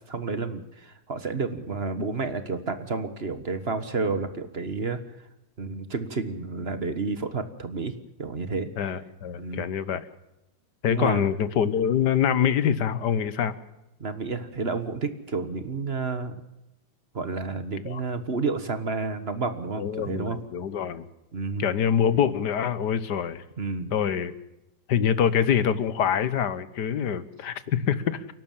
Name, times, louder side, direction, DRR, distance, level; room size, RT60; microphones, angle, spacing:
voice 1, 0.1-5.0 5.6-7.9 8.2-8.7 9.4-9.7 10.9-11.2 14.0-16.3 17.1-20.4 21.3-21.7 23.6-23.9, right 4 dB, 35° right, 11 dB, 1.5 m, -30 dB
voice 2, 8.8-10.1 10.8-13.6 17.9-18.0 19.8-21.1 21.6-23.4 23.9-24.3 24.9-28.2, left 8 dB, 65° left, 15 dB, 1.7 m, -25 dB
29.5 x 12.0 x 7.4 m, 0.93 s
omnidirectional pair, 2.0 m